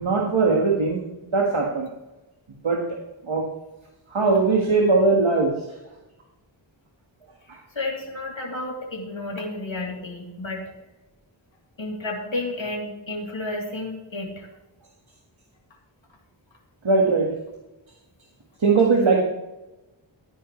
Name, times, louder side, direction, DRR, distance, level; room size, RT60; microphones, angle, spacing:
voice 1, 0.0-1.9 2.6-2.8 3.3-3.4 4.1-5.5 16.8-17.3 18.6-19.2, right 4 dB, 85° right, -1 dB, 1.7 m, -20 dB
voice 2, 7.7-10.6 11.8-14.5, left 2 dB, 75° left, -2 dB, 3.3 m, -31 dB
15.0 x 10.5 x 3.2 m, 1.0 s
wide cardioid pair, 45°, 46 cm